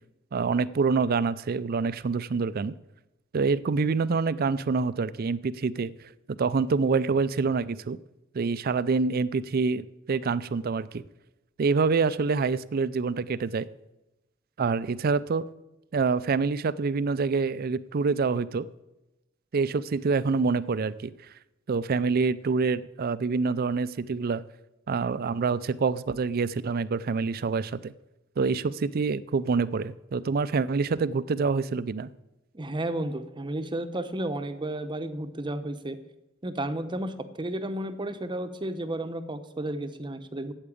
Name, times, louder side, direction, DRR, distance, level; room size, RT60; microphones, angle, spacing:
voice 1, 0.3-2.7 3.3-5.9 6.4-8.0 8.3-11.0 11.6-13.7 14.6-15.4 15.9-18.7 19.5-21.1 21.7-24.4 24.9-27.9 28.4-32.1, right 4 dB, 50° right, 17 dB, 0.4 m, -26 dB
voice 2, 32.5-36.0 36.4-40.5, right 1 dB, 25° right, 10 dB, 0.7 m, -32 dB
8.7 x 8.0 x 8.4 m, 0.95 s
head